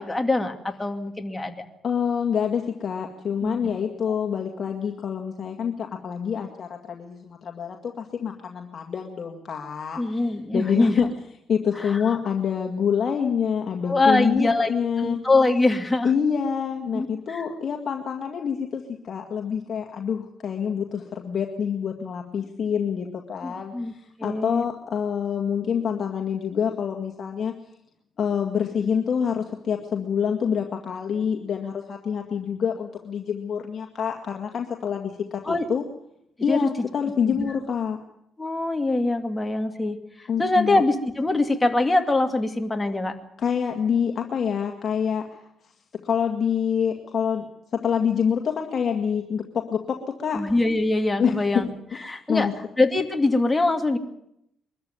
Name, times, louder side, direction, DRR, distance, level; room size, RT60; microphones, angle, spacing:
voice 1, 0.0-1.6 3.4-3.7 10.0-11.1 11.8-12.0 13.8-16.1 16.9-17.4 23.4-23.9 24.2-24.6 35.4-35.7 36.5-36.7 37.3-37.5 38.4-40.0 40.4-43.1 50.3-51.7 52.1-52.5 52.8-54.0, left 2 dB, 15° left, 5 dB, 2.5 m, -23 dB
voice 2, 1.8-10.2 10.5-11.1 11.5-15.2 16.0-27.5 28.2-35.8 36.4-38.0 40.3-40.8 43.4-45.4 46.0-47.5 47.7-50.5 51.2-51.4 52.0-52.5, left 7 dB, 50° left, 2 dB, 2.0 m, -26 dB
22.5 x 13.5 x 9.6 m, 0.77 s
cardioid pair, 90°, 0 cm